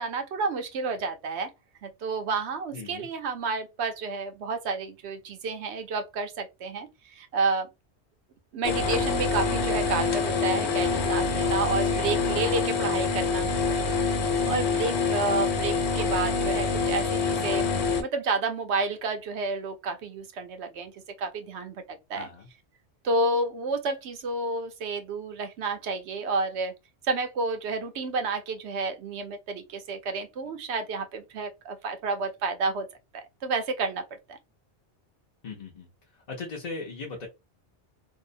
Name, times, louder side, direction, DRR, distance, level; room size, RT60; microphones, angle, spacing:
voice 1, 0.0-1.5 1.8-7.7 8.5-13.9 14.5-17.7 18.0-22.3 23.0-26.7 27.0-32.9 33.1-34.0 34.3-34.4, right 3 dB, 75° right, 0.9 m, -30 dB
voice 2, 2.7-3.1 11.7-12.0 14.4-14.7 22.1-22.5 35.4-37.3, left 4 dB, 45° left, 0.7 m, -39 dB
sound 1, 8.6-18.0, left 4 dB, 75° left, 0.9 m, -26 dB
2.7 x 2.1 x 2.5 m
omnidirectional pair, 1.2 m